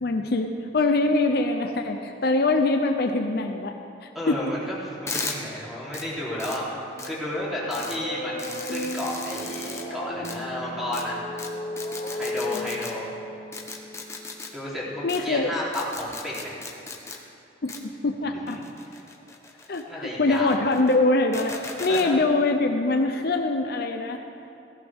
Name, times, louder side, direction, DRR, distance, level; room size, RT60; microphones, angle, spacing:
voice 1, 0.0-4.4 15.0-15.5 17.6-18.6 19.7-24.2, left 2 dB, 60° left, 5 dB, 0.7 m, -23 dB
voice 2, 4.1-6.6 7.0-11.4 12.1-13.1 14.5-16.6 18.3-18.6 18.9-19.0 19.9-20.6 21.9-22.2, left 1 dB, ahead, -8 dB, 3.6 m, -32 dB
sound 1, 5.1-5.4 5.9-6.0 6.4-6.6 7.0-7.1 7.7-8.0 8.4-9.8 10.2-10.4 10.9-11.0 11.4-11.5 11.8-12.9 13.5-14.5 15.1-15.2 15.7-17.2 17.7-17.8 18.5-19.8 20.3-21.0 21.3-22.1, left 3 dB, 15° left, 1.1 m, -36 dB
sound 2, 6.8-14.5, left 1 dB, 45° left, 1.0 m, -35 dB
16.0 x 15.0 x 3.7 m, 2.9 s
head